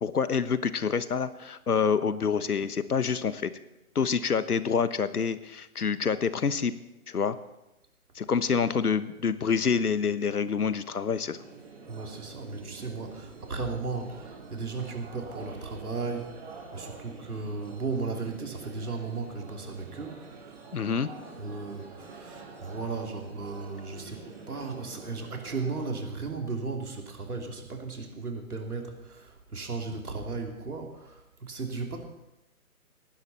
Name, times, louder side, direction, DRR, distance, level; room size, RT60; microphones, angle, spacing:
voice 1, 0.0-3.5 3.9-6.7 7.1-7.4 8.1-11.4 20.7-21.1, left 6 dB, 80° left, 14 dB, 1.1 m, -27 dB
sound 1, 11.3-25.9, right 4 dB, 40° right, 3.9 m, -47 dB
voice 2, 11.9-20.6 21.4-32.1, right 4 dB, 75° right, 2 dB, 3.1 m, -36 dB
18.5 x 11.5 x 4.2 m, 0.94 s
figure-of-eight pair, 145°, 45 cm